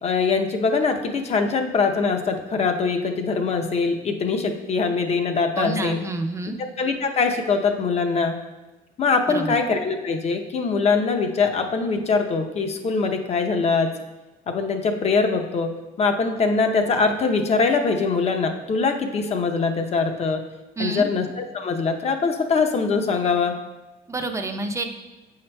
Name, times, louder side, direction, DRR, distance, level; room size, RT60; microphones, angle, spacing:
voice 1, 0.0-6.0 6.8-8.4 9.0-13.9 14.5-15.7 16.0-20.4 20.8-23.5, left 4 dB, 40° left, 5 dB, 0.7 m, -22 dB
voice 2, 5.6-6.6 9.3-9.6 20.8-21.1 24.1-24.9, right 2 dB, 15° right, 5 dB, 0.6 m, -28 dB
8.4 x 5.6 x 2.2 m, 1.1 s
cardioid pair, 110°, 17 cm